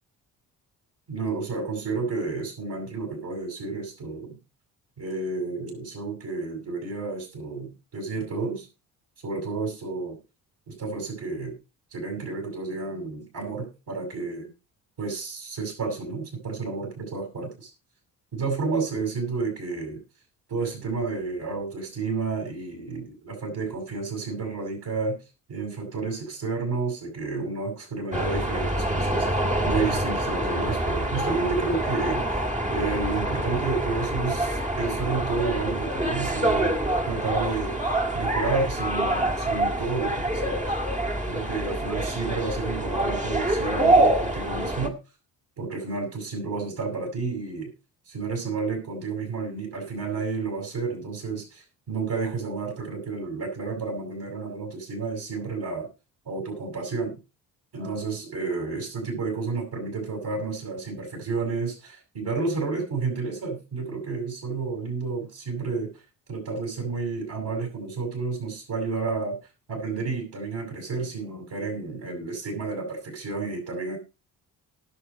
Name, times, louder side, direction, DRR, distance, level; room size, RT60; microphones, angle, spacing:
voice 1, 1.1-4.4 5.0-8.7 9.2-10.2 10.7-11.5 11.9-14.5 15.0-17.7 18.3-20.0 20.5-25.2 25.5-32.3 32.7-36.7 37.0-37.8 38.1-40.7 41.3-45.0 45.6-47.7 48.1-55.9 56.2-57.2 57.7-65.9 66.3-69.4 69.7-74.0, right 4 dB, 50° right, 2 dB, 6.8 m, -31 dB
sound 1, 28.1-44.9, right 1 dB, 15° right, 2.0 m, -26 dB
18.5 x 7.0 x 4.3 m, 0.30 s
figure-of-eight pair, 45°, 49 cm